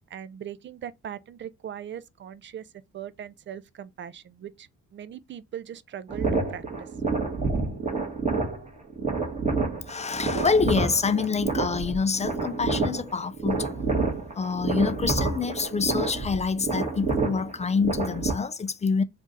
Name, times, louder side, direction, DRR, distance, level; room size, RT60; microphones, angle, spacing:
voice 1, 0.1-2.7 2.9-6.9, right 9 dB, 40° right, 0.5 m, -40 dB
sound 1, 6.1-18.3, right 3 dB, 25° right, 1.6 m, -28 dB
voice 2, 9.9-13.9 14.4-19.0, left 5 dB, 25° left, 0.4 m, -26 dB
3.6 x 2.5 x 4.0 m
cardioid pair, 90°, 30 cm